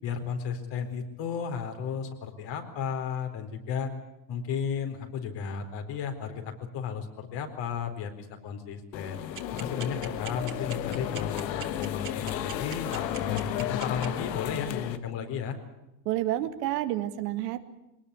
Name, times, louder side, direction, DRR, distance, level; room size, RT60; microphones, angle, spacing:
voice 1, 0.0-3.9 4.3-9.2 9.5-15.6, left 7 dB, 60° left, 5 dB, 4.4 m, -34 dB
sound 1, 8.9-15.0, left 11 dB, 85° left, 1.5 m, -33 dB
sound 2, 9.4-14.1, right 9 dB, 40° right, 2.7 m, -39 dB
voice 2, 16.1-17.6, right 14 dB, 75° right, 8 dB, 2.1 m, -29 dB
22.5 x 19.5 x 8.4 m, 0.95 s
hypercardioid pair, 85°, 49 cm